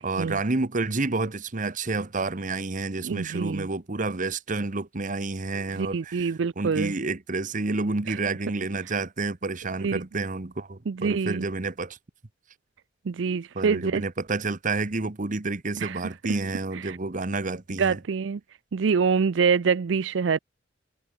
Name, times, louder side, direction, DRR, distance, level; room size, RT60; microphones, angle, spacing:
voice 1, 0.0-12.0 13.5-18.0, right 3 dB, 45° right, 1.1 m, -29 dB
voice 2, 3.0-3.7 5.7-6.9 8.1-8.2 9.8-10.0 10.9-11.4 13.1-14.0 15.8-16.0 16.7-17.0 17.8-18.4 18.7-20.4, right 5 dB, 75° right, 0.5 m, -25 dB
head